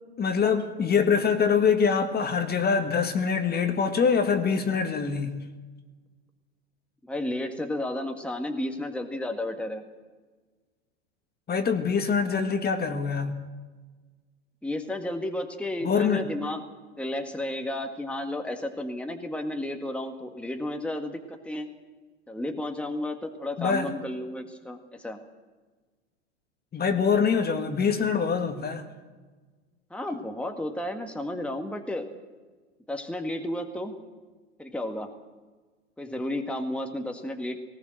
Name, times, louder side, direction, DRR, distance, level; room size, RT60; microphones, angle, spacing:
voice 1, 0.2-5.3 11.5-13.4 15.8-16.2 23.6-23.9 26.7-28.8, left 6 dB, 25° left, 1.9 m, -24 dB
voice 2, 7.0-9.8 14.6-16.6 17.0-21.7 22.3-25.2 29.9-32.1 32.9-33.9 34.6-35.1 36.0-37.6, left 1 dB, 5° left, 1.8 m, -32 dB
19.0 x 18.0 x 7.8 m
hypercardioid pair, 105°, 36 cm